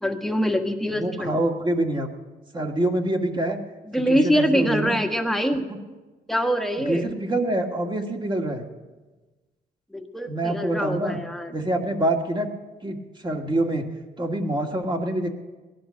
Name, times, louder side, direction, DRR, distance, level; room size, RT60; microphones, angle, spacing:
voice 1, 0.0-1.4 3.9-5.7 6.3-7.1 9.9-11.5, equal, ahead, 4 dB, 1.4 m, -24 dB
voice 2, 0.9-2.1 2.5-3.6 3.9-5.0 6.9-8.7 10.3-11.2 11.5-12.5 12.8-13.0 13.2-13.9 14.2-15.3, right 1 dB, 25° right, 3 dB, 1.9 m, -25 dB
17.5 x 11.0 x 6.4 m, 1.2 s
cardioid pair, 95°, 19 cm